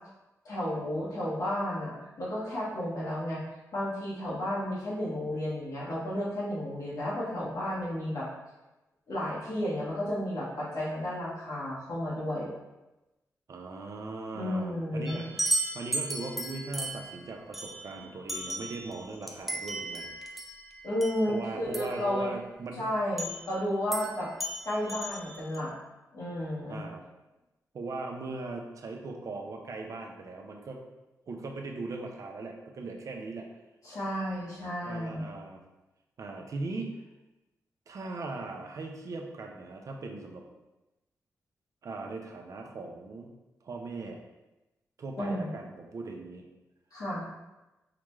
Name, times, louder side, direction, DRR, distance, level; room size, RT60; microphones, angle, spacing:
voice 1, 0.4-3.4 3.7-8.3 9.1-12.5 14.3-15.3 20.8-22.3 22.8-24.3 24.6-25.7 26.1-26.8 33.8-35.3 45.2-45.5 46.9-47.2, left 1 dB, 70° left, -7 dB, 1.2 m, -32 dB
voice 2, 13.5-20.3 21.3-22.9 26.7-27.0 27.7-30.8 31.3-33.5 34.8-35.6 36.2-37.0 37.9-40.5 41.8-43.3 43.6-44.2 45.0-46.5, right 3 dB, 60° right, 2 dB, 0.6 m, -39 dB
sound 1, 15.1-22.0 23.2-23.5 23.9-24.1 24.4-25.6, right 1 dB, ahead, 0.5 m, -35 dB
4.9 x 2.2 x 3.1 m, 1.0 s
cardioid pair, 75°, 6 cm